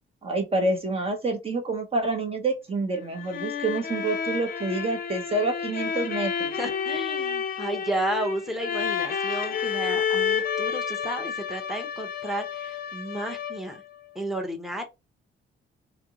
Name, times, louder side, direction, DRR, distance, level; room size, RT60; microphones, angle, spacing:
voice 1, 0.2-6.5, right 2 dB, 30° right, 0.8 m, -27 dB
sound 1, 3.0-13.8, left 7 dB, 45° left, 0.6 m, -30 dB
voice 2, 6.6-13.8 14.1-14.8, right 1 dB, ahead, 0.8 m, -32 dB
4.1 x 2.0 x 3.7 m
cardioid pair, 90°, 20 cm